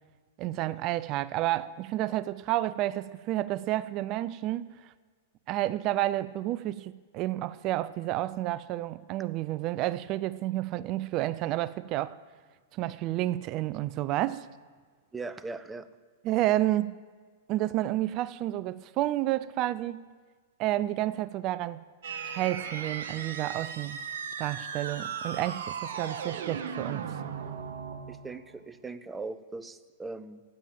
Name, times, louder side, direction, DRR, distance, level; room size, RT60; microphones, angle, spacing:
voice 1, 0.4-4.7 5.5-12.1 12.7-14.5 16.2-17.0 17.5-20.1 20.6-21.8 22.2-24.0 24.4-27.1, right 15 dB, 40° right, 0.5 m, -30 dB
voice 2, 15.1-15.9 26.3-26.4 28.1-30.4, right 3 dB, 10° right, 0.8 m, -40 dB
sound 1, 22.0-28.5, right 6 dB, 70° right, 1.5 m, -37 dB
15.5 x 9.1 x 7.4 m
hypercardioid pair, 115°, 0 cm